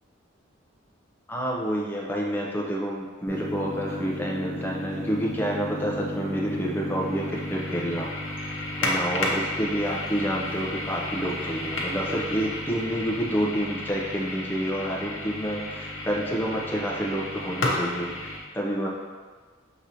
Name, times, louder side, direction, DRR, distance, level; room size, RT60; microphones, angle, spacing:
voice 1, 1.3-8.1 8.4-18.3 18.5-18.9, equal, 10° left, -3 dB, 0.6 m, -29 dB
sound 1, 3.3-18.4, left 1 dB, 75° left, 0.7 m, -32 dB
6.1 x 2.9 x 2.7 m, 1.5 s
head